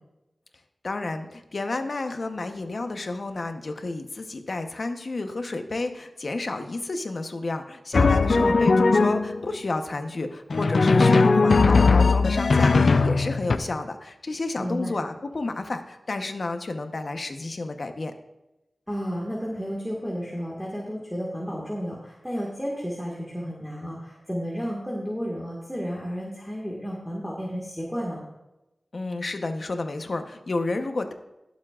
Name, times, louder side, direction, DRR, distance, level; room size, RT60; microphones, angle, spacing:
voice 1, 0.8-18.1 28.9-31.1, left 2 dB, 60° left, 7 dB, 1.0 m, -31 dB
Drum, 7.9-9.4 10.5-13.6, left 4 dB, 75° left, 0.5 m, -19 dB
voice 2, 8.2-8.5 14.6-14.9 18.9-28.2, equal, ahead, -5 dB, 1.8 m, -32 dB
21.5 x 7.3 x 2.5 m, 0.95 s
wide cardioid pair, 85°, 0 cm